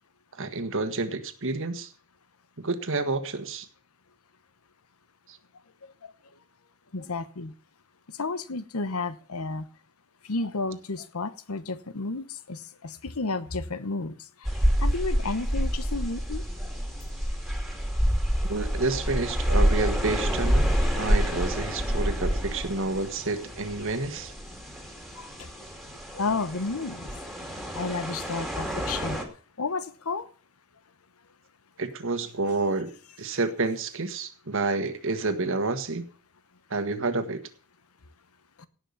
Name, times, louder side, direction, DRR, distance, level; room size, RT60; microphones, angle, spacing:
voice 1, 0.3-1.9 2.6-3.7 5.3-5.4 18.5-24.3 31.8-36.1 36.7-37.4, right 3 dB, 65° right, 9 dB, 1.6 m, -29 dB
voice 2, 6.9-7.5 8.2-9.7 10.3-14.1 14.8-16.4 26.1-27.1 27.7-29.3 29.6-30.3, left 3 dB, 80° left, 13 dB, 1.1 m, -31 dB
sound 1, 14.5-29.2, equal, ahead, 2.5 m, -28 dB
17.5 x 6.1 x 7.0 m, 0.41 s
head